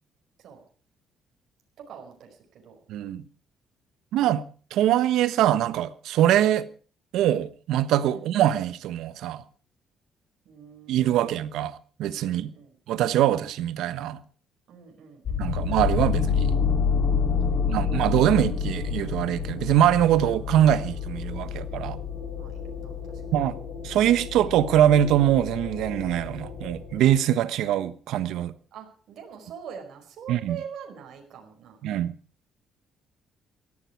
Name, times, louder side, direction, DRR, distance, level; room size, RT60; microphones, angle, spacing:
voice 1, 1.8-2.7 4.2-4.3 8.1-8.3 10.4-11.3 12.2-12.7 14.7-15.7 17.4-18.0 22.3-23.3 28.7-31.8, right 7 dB, 65° right, 5.1 m, -44 dB
voice 2, 2.9-3.2 4.1-4.4 4.7-6.7 7.1-9.4 10.9-12.5 12.9-14.2 15.4-16.6 17.7-22.0 23.3-23.6 23.8-28.5 30.3-30.6 31.8-32.1, right 11 dB, 85° right, 1.2 m, -23 dB
sound 1, 15.3-27.2, left 6 dB, 55° left, 5.3 m, -29 dB
17.5 x 14.0 x 4.7 m
cardioid pair, 125°, 0 cm